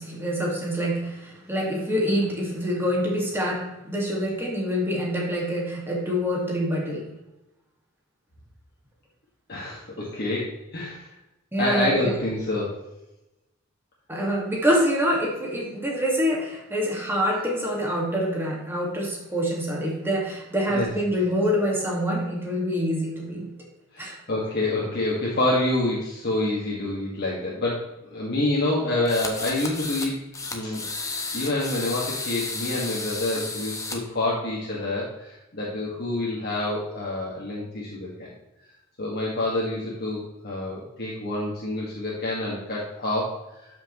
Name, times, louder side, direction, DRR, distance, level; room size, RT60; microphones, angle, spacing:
voice 1, 0.0-7.1 11.5-12.1 14.1-23.5 24.0-24.1, equal, 10° right, -3 dB, 1.8 m, -26 dB
voice 2, 9.5-11.1 11.6-12.8 20.7-20.9 23.9-30.2 30.5-30.8 31.3-38.3 39.0-43.7, left 2 dB, 45° left, -5 dB, 1.7 m, -27 dB
sound 1, 29.1-30.1 30.3-34.0, left 3 dB, 15° left, 1.1 m, -32 dB
12.5 x 6.0 x 3.1 m, 0.96 s
head